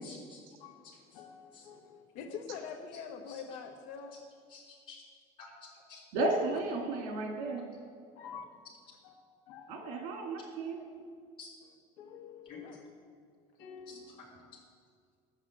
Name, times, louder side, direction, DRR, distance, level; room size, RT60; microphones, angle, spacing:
voice 1, 0.0-0.4 0.8-1.0 1.5-1.6 3.3-3.4 4.1-4.2 4.5-5.0 5.4-6.0 10.4-11.1 11.4-11.5 12.5-12.6 13.9-14.0, left 4 dB, 40° left, -4 dB, 3.6 m, -52 dB
voice 2, 0.6-2.5 8.1-8.5 9.0-9.1 9.5-9.9 12.0-12.9 13.6-14.6, left 6 dB, 85° left, 1 dB, 1.6 m, -51 dB
voice 3, 2.1-4.1 12.6-12.8, left 6 dB, 65° left, 5 dB, 1.1 m, -43 dB
voice 4, 6.1-7.6 9.7-10.8, right 2 dB, 90° right, 2 dB, 2.2 m, -33 dB
11.0 x 8.5 x 7.8 m, 2.1 s
cardioid pair, 180°, 14 cm